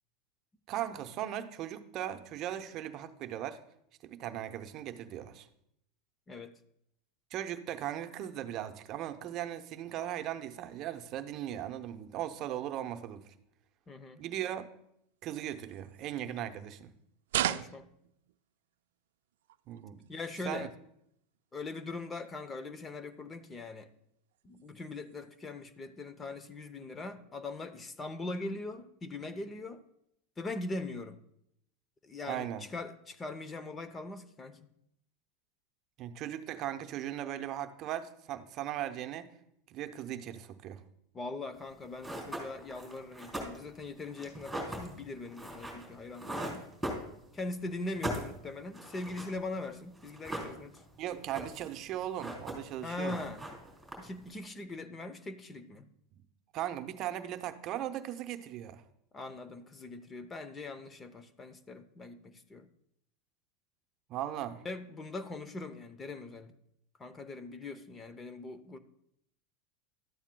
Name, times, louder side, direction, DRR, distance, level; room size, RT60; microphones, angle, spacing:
voice 1, 0.7-3.6 4.0-5.5 7.3-13.2 14.2-14.6 15.2-16.9 19.7-20.1 20.5-20.7 32.3-32.6 36.0-39.3 39.7-40.8 51.0-53.2 56.5-58.8 64.1-64.6, right 11 dB, 45° right, 9 dB, 0.7 m, -38 dB
voice 2, 13.9-14.2 17.5-17.8 20.1-20.7 21.5-23.9 24.4-29.8 30.4-31.2 32.0-34.7 41.1-46.7 47.3-50.8 52.8-53.4 54.0-55.9 59.1-62.7 64.6-66.5 67.0-68.8, left 2 dB, 20° left, 12 dB, 0.6 m, -41 dB
sound 1, 15.2-16.9 17.2-18.8 19.3-20.6 21.0-21.4 21.7-21.8 22.1-22.5 23.0-23.1 23.5-24.0 24.3-25.5, right 12 dB, 85° right, 0.3 m, -40 dB
sound 2, 41.6-41.7 42.0-47.5 47.8-49.4 49.6-49.7 50.0-50.9 51.2-51.8 52.0-52.8 53.0-54.3, right 1 dB, ahead, 3.4 m, -40 dB
12.5 x 8.9 x 2.2 m, 0.75 s
supercardioid pair, 125°, 0 cm